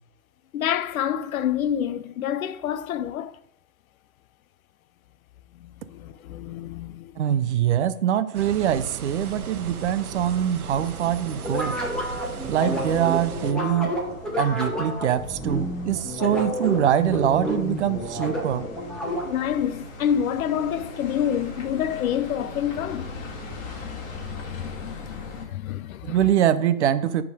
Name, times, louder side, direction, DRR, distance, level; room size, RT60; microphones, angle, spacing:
voice 1, 0.5-3.3 5.9-7.1 19.3-26.2, left 9 dB, 70° left, 0.6 m, -28 dB
voice 2, 7.2-11.8 12.5-13.9 14.4-18.6 26.1-27.2, right 10 dB, 50° right, 0.6 m, -23 dB
sound 1, 8.3-13.5, right 6 dB, 80° right, 0.9 m, -37 dB
sound 2, 9.2-25.5, left 2 dB, 30° left, 2.0 m, -41 dB
sound 3, 11.4-19.5, equal, ahead, 1.0 m, -30 dB
10.0 x 3.6 x 4.8 m
hypercardioid pair, 140°, 43 cm